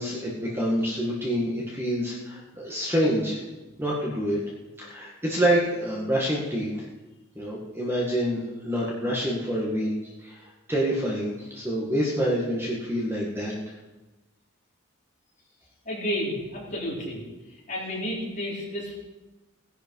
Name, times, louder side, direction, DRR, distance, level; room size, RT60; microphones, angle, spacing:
voice 1, 0.0-3.4 3.8-4.4 4.8-6.9 7.4-13.6, equal, 10° right, -4 dB, 1.9 m, -27 dB
voice 2, 15.9-17.2 17.7-18.9, equal, 35° left, -5 dB, 4.1 m, -31 dB
16.5 x 11.0 x 4.8 m, 1.1 s
head